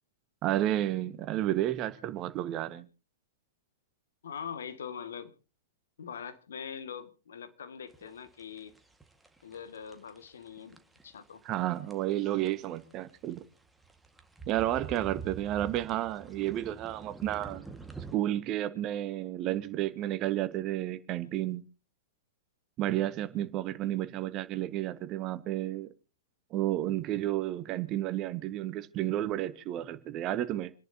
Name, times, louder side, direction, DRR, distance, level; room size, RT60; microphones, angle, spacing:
voice 1, 0.4-2.9 11.4-13.4 14.5-17.6 18.1-21.6 22.8-25.9 26.5-30.7, right 13 dB, 35° right, 1.5 m, -31 dB
voice 2, 4.2-5.3 6.0-8.7 9.4-11.4, left 7 dB, 70° left, 1.9 m, -42 dB
sound 1, 7.9-18.2, right 5 dB, 5° right, 1.8 m, -46 dB
28.0 x 11.0 x 2.9 m
figure-of-eight pair, 105°, 0 cm